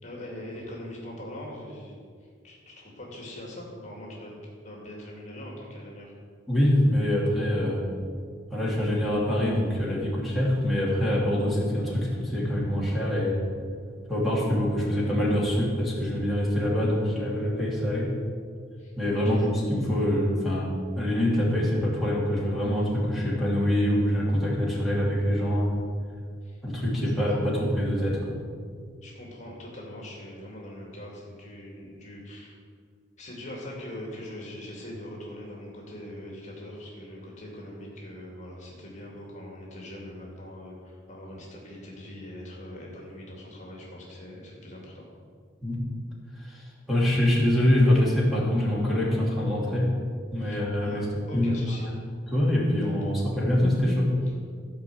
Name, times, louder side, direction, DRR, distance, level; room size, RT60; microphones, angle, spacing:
voice 1, 0.0-4.3 4.6-6.1 18.8-19.4 26.4-26.6 27.0-27.4 29.0-32.6 33.2-45.1 50.4-51.0 51.3-51.9, left 1 dB, 40° left, -2 dB, 2.4 m, -42 dB
voice 2, 6.5-7.8 8.5-13.4 14.1-18.1 19.0-25.7 26.6-28.3 45.6-45.8 46.4-49.9 50.3-51.9 52.3-54.1, left 1 dB, ahead, -6 dB, 3.0 m, -25 dB
15.0 x 5.6 x 8.0 m, 2.1 s
head